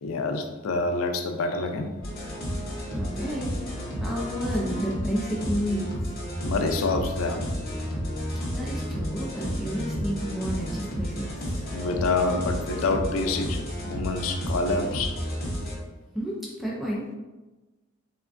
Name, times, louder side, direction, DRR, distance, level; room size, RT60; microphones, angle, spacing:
voice 1, 0.0-1.9 6.4-7.5 11.7-15.2, left 3 dB, 85° left, 5 dB, 0.4 m, -27 dB
sound 1, 2.0-15.7, equal, 45° left, 0.8 m, -32 dB
voice 2, 2.9-3.5 4.0-5.9 8.5-11.7 16.1-17.0, equal, ahead, -5 dB, 0.4 m, -31 dB
3.5 x 2.1 x 2.4 m, 1.1 s
head